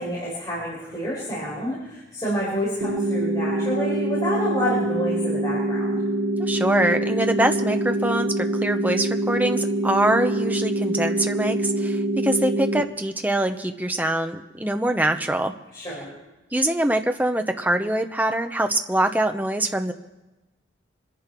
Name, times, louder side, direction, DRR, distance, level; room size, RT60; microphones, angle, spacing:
voice 1, 0.0-6.0 15.7-16.1, equal, 20° left, -7 dB, 4.8 m, -28 dB
sound 1, 2.8-12.8, right 1 dB, 60° right, 1.5 m, -25 dB
voice 2, 6.4-15.5 16.5-19.9, right 1 dB, 10° right, 6 dB, 0.8 m, -24 dB
25.5 x 10.5 x 4.6 m, 1.0 s
head